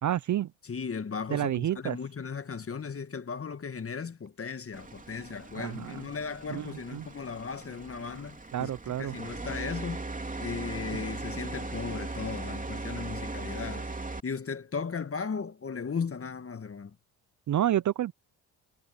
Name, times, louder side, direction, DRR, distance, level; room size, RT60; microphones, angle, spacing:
voice 1, 0.0-0.5 1.3-2.0 5.5-6.0 6.5-7.1 8.5-9.2 10.9-11.0 17.5-18.1, right 11 dB, 40° right, 0.7 m, -29 dB
voice 2, 0.6-8.7 9.0-10.1 10.4-13.9 14.2-17.0, left 5 dB, 30° left, 1.7 m, -36 dB
sound 1, 4.7-14.2, right 3 dB, 20° right, 3.3 m, -39 dB
hypercardioid pair, 60°, 44 cm